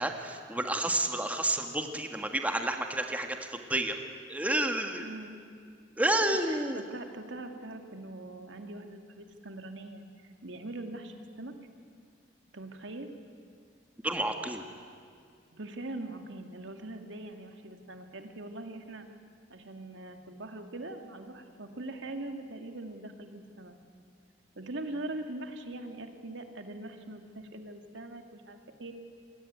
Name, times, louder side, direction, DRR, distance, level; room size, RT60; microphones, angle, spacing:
voice 1, 0.0-4.0 4.3-5.1 6.0-6.8 14.0-14.6, right 1 dB, 10° right, 4 dB, 1.6 m, -30 dB
voice 2, 5.0-5.4 6.5-11.5 12.5-13.1 15.5-19.1 19.5-23.8 24.6-28.9, right 2 dB, 75° right, 5 dB, 2.1 m, -42 dB
27.5 x 21.5 x 9.5 m, 2.2 s
head